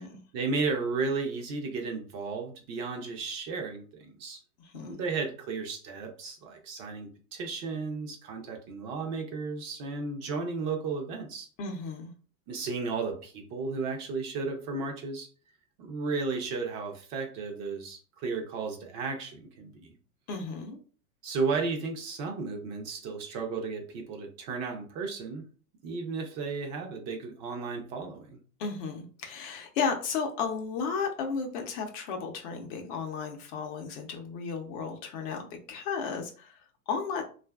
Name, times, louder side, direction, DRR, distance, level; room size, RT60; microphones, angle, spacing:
voice 1, 0.3-4.4 4.8-11.5 12.5-15.3 15.8-19.9 21.2-25.4 25.8-28.4, right 4 dB, 35° right, 3 dB, 0.6 m, -34 dB
voice 2, 4.6-5.0 11.6-12.1 20.3-20.8 28.6-37.2, left 5 dB, 40° left, 3 dB, 0.6 m, -34 dB
2.6 x 2.4 x 2.2 m, 0.39 s
hypercardioid pair, 120°, 46 cm